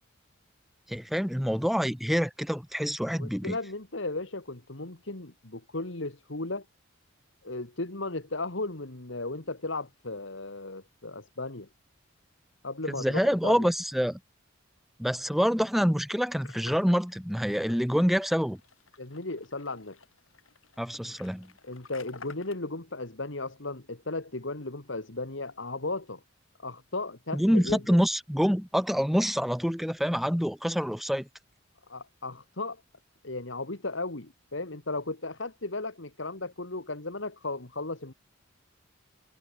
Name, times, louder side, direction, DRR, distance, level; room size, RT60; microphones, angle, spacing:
voice 1, 0.9-3.6 12.9-14.2 15.0-18.6 20.8-21.5 27.3-31.3, equal, ahead, 0.7 m, -26 dB
voice 2, 3.2-6.6 7.4-11.7 12.6-13.7 19.0-20.0 21.6-26.2 26.6-27.8 31.9-32.8 33.2-38.1, left 2 dB, 65° left, 2.1 m, -35 dB
sound 1, 16.4-22.5, left 4 dB, 80° left, 4.6 m, -52 dB
head